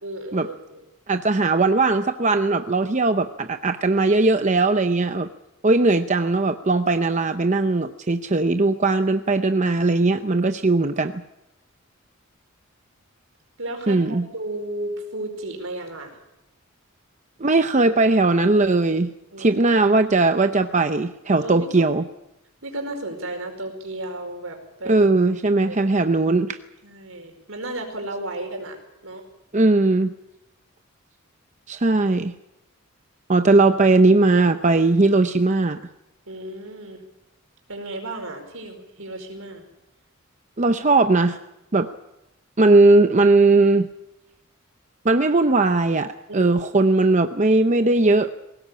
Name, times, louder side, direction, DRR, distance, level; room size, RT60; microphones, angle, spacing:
voice 1, 0.0-0.8 13.6-16.2 19.3-19.6 21.4-21.9 22.6-25.1 25.6-25.8 26.8-29.2 36.3-37.0 37.7-39.6 46.3-46.9, right 1 dB, 70° right, 4 dB, 4.9 m, -34 dB
voice 2, 1.1-5.3 5.6-11.1 13.9-14.2 17.4-19.1 19.4-22.0 24.9-26.6 29.5-30.1 31.7-32.3 33.3-35.8 40.6-41.4 41.7-41.9 42.6-43.9 45.0-48.3, right 3 dB, 35° right, 8 dB, 0.7 m, -19 dB
21.0 x 18.0 x 8.7 m, 0.90 s
head